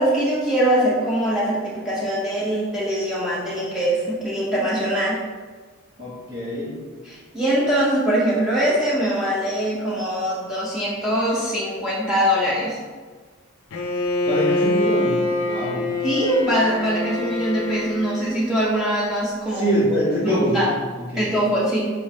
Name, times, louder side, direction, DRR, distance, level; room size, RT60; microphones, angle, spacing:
voice 1, 0.0-5.2 7.1-12.8 16.0-19.6 20.2-20.7 21.2-21.9, right 1 dB, 5° right, -8 dB, 0.6 m, -22 dB
voice 2, 6.0-6.7 14.2-15.2 15.4-15.9 19.6-20.6 21.0-21.3, equal, 50° right, -7 dB, 1.3 m, -24 dB
Bowed string instrument, 13.7-18.5, left 2 dB, 85° left, 0.5 m, -25 dB
4.7 x 3.2 x 3.1 m, 1.4 s
head